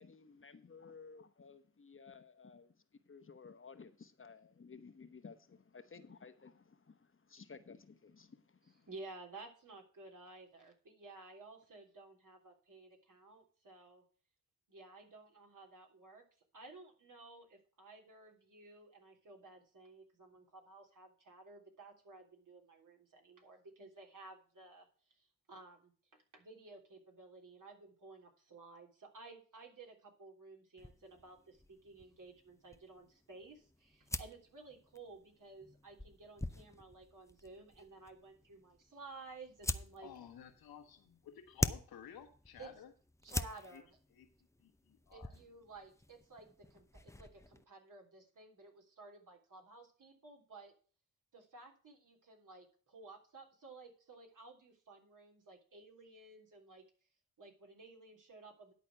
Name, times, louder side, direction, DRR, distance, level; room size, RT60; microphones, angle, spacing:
voice 1, 0.0-8.9, left 5 dB, 35° left, 1.1 m, -56 dB
voice 2, 8.9-14.0 14.7-16.2 16.5-40.1 42.6-42.7 43.2-43.9 45.1-50.7 51.3-56.8 57.4-58.7, right 3 dB, 60° right, 3.4 m, -55 dB
sound 1, 30.8-47.6, left 1 dB, 10° left, 0.7 m, -45 dB
voice 3, 40.0-42.9 43.7-43.8 44.1-44.3 44.6-45.3, left 9 dB, 90° left, 1.6 m, -54 dB
11.0 x 4.2 x 7.7 m
cardioid pair, 55°, 36 cm